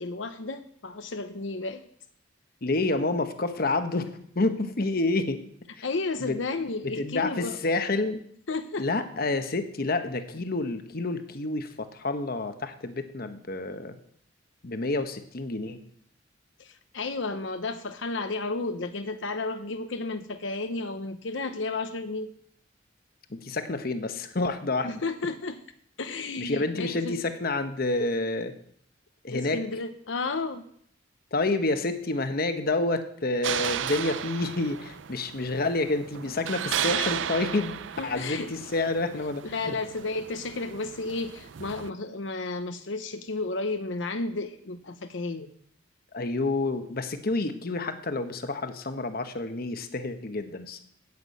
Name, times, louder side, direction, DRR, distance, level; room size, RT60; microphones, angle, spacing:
voice 1, 0.0-1.8 5.8-7.6 8.5-8.9 16.6-22.3 24.8-25.6 26.0-27.2 29.3-30.7 38.0-38.5 39.4-45.5, left 3 dB, 80° left, 9 dB, 0.8 m, -32 dB
voice 2, 2.6-5.4 5.8-5.9 6.2-6.4 6.8-8.2 8.8-14.0 14.6-15.8 23.3-25.0 26.4-28.5 29.2-29.6 31.3-37.7 38.0-39.8 46.1-50.8, left 2 dB, 50° left, 9 dB, 1.0 m, -29 dB
sound 1, 33.4-41.9, right 9 dB, 80° right, 0.5 m, -34 dB
9.5 x 8.2 x 8.3 m, 0.65 s
head